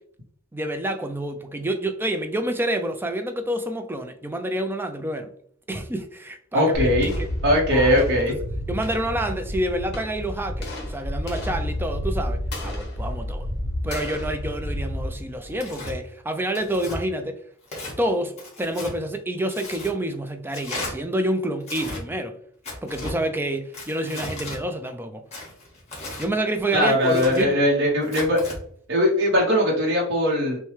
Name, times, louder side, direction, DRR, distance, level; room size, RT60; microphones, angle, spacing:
voice 1, 0.5-5.3 5.7-7.3 7.7-8.4 8.7-13.5 13.8-17.4 18.0-22.4 22.8-25.2 26.2-27.6, right 1 dB, 10° right, 0.4 m, -28 dB
voice 2, 6.5-7.1 7.4-8.4 26.7-28.4 28.9-30.6, equal, 60° right, 0.9 m, -20 dB
sound 1, 6.7-15.9, left 1 dB, 50° left, 1.4 m, -30 dB
Tearing, 15.6-15.9 16.5-17.0 17.6-18.0 18.4-18.9 19.5-19.9 20.5-20.9 21.6-22.0 22.6-23.2 23.7-24.6 25.3-26.3 26.9-27.4 28.0-28.6, left 2 dB, 30° left, 1.5 m, -35 dB
6.3 x 2.2 x 3.2 m
head